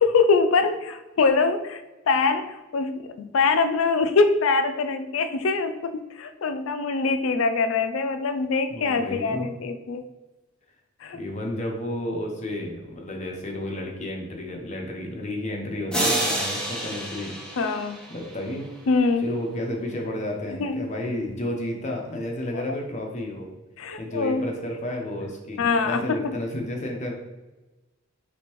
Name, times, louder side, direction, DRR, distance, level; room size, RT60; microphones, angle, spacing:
voice 1, 0.0-1.8 2.1-10.0 11.0-11.2 17.6-18.0 18.9-19.3 20.6-20.9 23.8-24.5 25.6-26.4, left 4 dB, 90° left, 9 dB, 0.4 m, -23 dB
voice 2, 8.7-9.5 11.1-17.4 18.1-18.7 19.2-23.5 24.0-27.1, left 1 dB, 35° left, 1 dB, 0.8 m, -31 dB
sound 1, 15.9-18.6, right 1 dB, 5° left, 0.9 m, -28 dB
5.1 x 3.4 x 3.0 m, 1.1 s
head